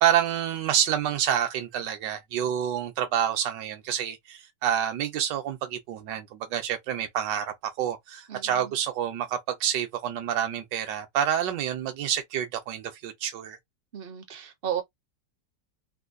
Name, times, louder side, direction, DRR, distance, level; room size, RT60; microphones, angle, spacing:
voice 1, 0.0-13.6, right 10 dB, 80° right, 1.5 m, -28 dB
voice 2, 8.3-8.7 13.9-14.8, right 9 dB, 50° right, 0.7 m, -34 dB
3.7 x 2.6 x 2.5 m
omnidirectional pair, 1.9 m